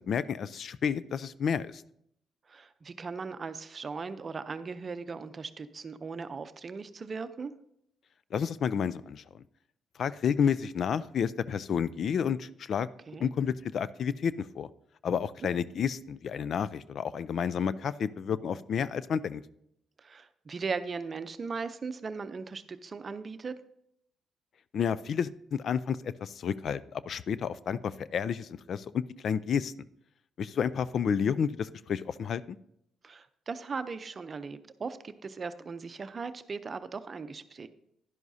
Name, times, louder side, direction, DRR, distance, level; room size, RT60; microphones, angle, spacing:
voice 1, 0.0-1.8 8.3-9.2 10.0-12.9 13.2-14.7 15.0-19.4 24.7-29.9 30.4-32.6, left 7 dB, 60° left, 17 dB, 0.3 m, -30 dB
voice 2, 2.5-7.5 13.1-13.3 15.1-15.5 18.8-18.9 20.0-23.5 33.0-37.7, right 4 dB, 40° right, 11 dB, 0.6 m, -38 dB
11.0 x 11.0 x 2.7 m, 0.75 s
cardioid pair, 90°, 0 cm